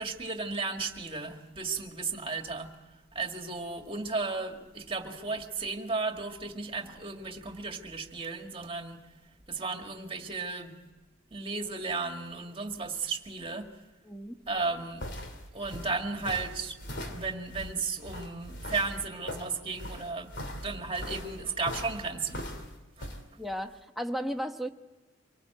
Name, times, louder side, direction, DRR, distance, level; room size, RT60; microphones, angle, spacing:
voice 1, 0.0-2.7 3.1-9.0 9.5-10.8 11.3-13.7 14.5-15.1 15.5-16.8 17.1-22.5 23.0-23.1, right 4 dB, 25° right, 4 dB, 2.0 m, -34 dB
voice 2, 14.0-14.3 23.4-24.7, equal, ahead, 4 dB, 1.1 m, -34 dB
sound 1, 14.6-23.2, left 1 dB, 60° left, 2.8 m, -40 dB
25.5 x 18.5 x 7.9 m, 1.2 s
head